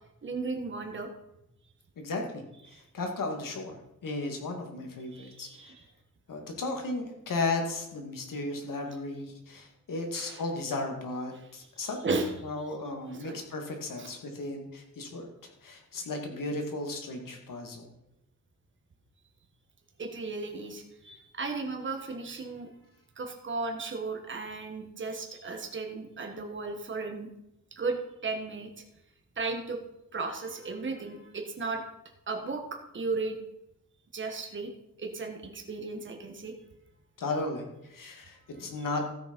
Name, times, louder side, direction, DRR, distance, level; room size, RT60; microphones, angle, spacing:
voice 1, 0.2-1.1 2.7-2.8 5.1-5.8 10.1-10.4 11.8-12.5 13.1-13.4 14.0-14.1 20.0-22.7 23.2-27.3 27.7-28.0 28.2-28.7 29.4-29.8 30.1-31.8 32.3-33.4 34.1-34.7 35.0-36.5, right 3 dB, 35° right, 3 dB, 1.4 m, -35 dB
voice 2, 2.0-2.4 2.7-3.8 4.0-5.7 6.3-12.0 12.4-15.3 15.6-17.9 37.2-39.1, left 2 dB, 70° left, 3 dB, 2.1 m, -35 dB
14.0 x 6.4 x 5.3 m, 0.86 s
wide cardioid pair, 160°, 34 cm